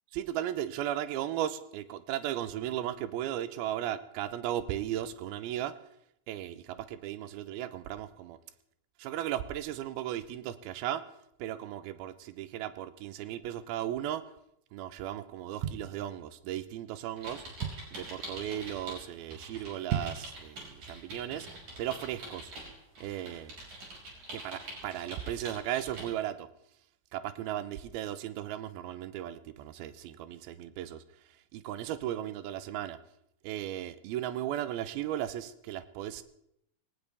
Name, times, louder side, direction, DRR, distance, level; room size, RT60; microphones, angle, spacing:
voice 1, 0.1-5.8 6.3-8.4 9.0-11.1 11.4-14.3 14.7-17.4 17.9-21.5 21.8-22.5 23.0-23.5 24.3-26.5 27.1-31.0 31.5-33.0 33.4-36.2, right 12 dB, 85° right, 12 dB, 2.7 m, -36 dB
sound 1, 15.3-16.6 17.1-17.2 17.3-18.1 18.6-18.8 19.1-19.2 19.7-20.4 20.8-20.9, right 9 dB, 70° right, 1.9 m, -35 dB
sound 2, 17.2-19.0 19.3-26.1, right 1 dB, 50° right, 6.9 m, -45 dB
21.0 x 19.0 x 3.4 m, 0.76 s
omnidirectional pair, 4.3 m